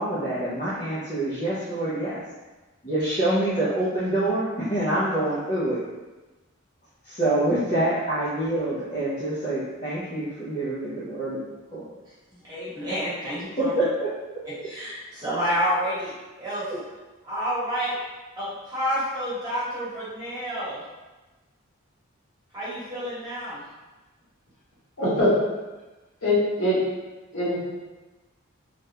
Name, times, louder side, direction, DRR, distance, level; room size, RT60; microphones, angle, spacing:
voice 1, 0.0-2.2 2.8-5.8 7.1-11.4 11.7-11.9 13.6-13.9 16.7-16.8, right 1 dB, 35° left, -11 dB, 0.6 m, -26 dB
voice 2, 12.3-13.7 14.4-16.1 16.4-16.7 17.2-18.0 18.4-20.8 22.5-23.6, equal, 20° right, -11 dB, 1.2 m, -29 dB
voice 3, 25.0-25.3 26.2-26.8 27.3-27.6, left 1 dB, 70° left, -9 dB, 1.2 m, -22 dB
3.3 x 2.4 x 2.8 m, 1.2 s
head